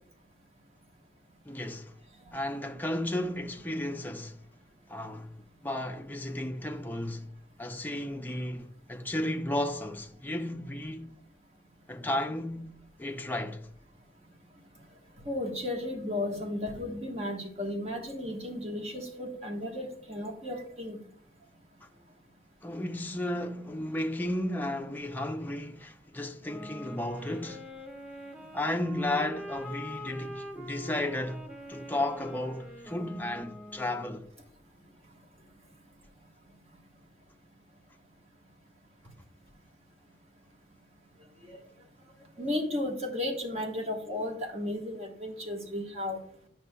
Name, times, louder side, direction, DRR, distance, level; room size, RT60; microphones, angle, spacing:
voice 1, 1.5-1.9 2.3-4.4 4.9-5.3 5.6-7.3 7.6-11.1 11.9-13.7 22.6-27.7 28.5-34.3, left 1 dB, 10° left, 0.5 m, -34 dB
voice 2, 15.2-21.0 41.4-41.6 42.4-46.2, left 1 dB, 35° right, 1.2 m, -34 dB
sound 1, 26.4-34.2, equal, 5° right, 1.0 m, -44 dB
9.6 x 5.9 x 2.2 m
head